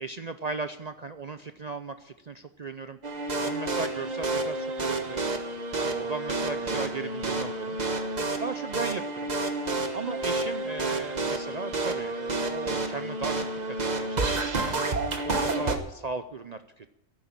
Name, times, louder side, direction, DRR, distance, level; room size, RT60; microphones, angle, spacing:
voice 1, 0.0-3.0 3.4-5.2 5.8-7.8 8.4-9.3 9.9-14.3 14.6-16.9, right 4 dB, 50° right, 9 dB, 0.5 m, -37 dB
sound 1, 3.0-15.8, right 2 dB, 35° right, 1.2 m, -30 dB
11.5 x 9.3 x 8.7 m, 0.84 s
omnidirectional pair, 1.4 m